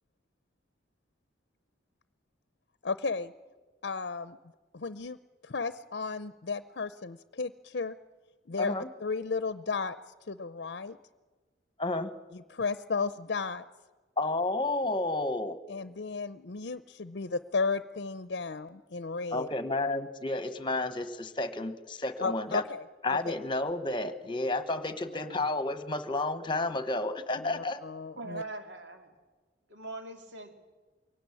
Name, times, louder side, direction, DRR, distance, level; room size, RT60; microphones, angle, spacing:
voice 1, 2.8-3.3 3.8-4.4 4.7-5.2 5.4-8.0 8.5-11.0 12.3-13.6 15.7-19.5 22.2-22.8 23.1-23.3 27.4-28.4, left 4 dB, 65° left, 13 dB, 0.7 m, -34 dB
voice 2, 8.6-8.9 11.8-12.1 14.2-15.6 19.3-22.6 23.0-27.8, left 2 dB, 25° left, 11 dB, 1.2 m, -31 dB
voice 3, 25.0-25.5 28.2-29.1 29.7-30.5, right 2 dB, 90° right, 4 dB, 2.3 m, -42 dB
23.0 x 17.5 x 9.8 m, 1.3 s
head